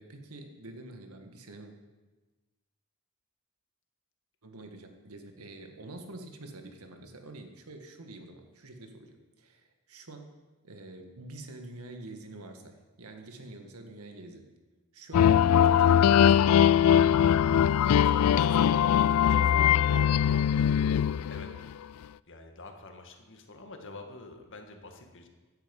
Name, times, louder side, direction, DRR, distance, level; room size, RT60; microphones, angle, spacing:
voice 1, 0.0-1.7 4.4-10.4 10.6-14.5 14.9-16.6 17.1-20.1, right 2 dB, 85° right, 5 dB, 1.8 m, -47 dB
sound 1, 15.1-21.7, left 9 dB, 75° left, 0.3 m, -21 dB
voice 2, 20.9-21.5 22.3-25.3, left 3 dB, 60° left, 5 dB, 1.8 m, -47 dB
16.5 x 10.0 x 5.4 m, 1.2 s
head